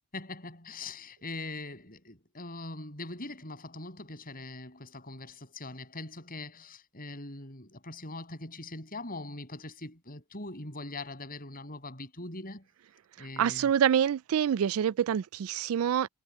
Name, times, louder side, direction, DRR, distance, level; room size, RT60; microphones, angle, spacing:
voice 1, 0.1-12.6 13.2-13.7, left 2 dB, 40° left, 8.0 m, -42 dB
voice 2, 13.4-16.1, right 8 dB, 65° right, 0.3 m, -26 dB
head